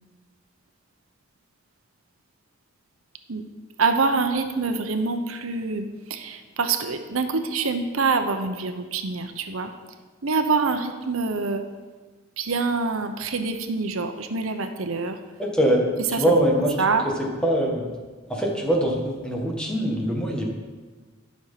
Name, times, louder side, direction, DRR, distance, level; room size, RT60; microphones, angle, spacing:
voice 1, 3.8-9.7 10.2-11.6 12.4-15.2 16.1-16.3 16.8-17.1, right 4 dB, 85° right, 7 dB, 0.8 m, -25 dB
voice 2, 15.4-15.9 16.1-16.7 17.2-17.9 18.3-20.4, right 1 dB, 5° left, -2 dB, 1.8 m, -23 dB
12.0 x 6.4 x 5.8 m, 1.4 s
head